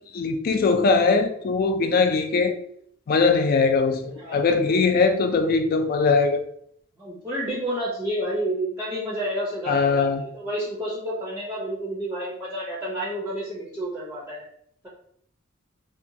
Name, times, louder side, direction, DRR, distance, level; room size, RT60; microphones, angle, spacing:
voice 1, 0.1-2.5 3.1-6.4 9.7-10.2, left 4 dB, 45° left, 6 dB, 0.3 m, -21 dB
voice 2, 4.2-5.0 7.0-14.4, right 1 dB, 10° right, -6 dB, 0.5 m, -30 dB
2.7 x 2.2 x 2.5 m, 0.69 s
head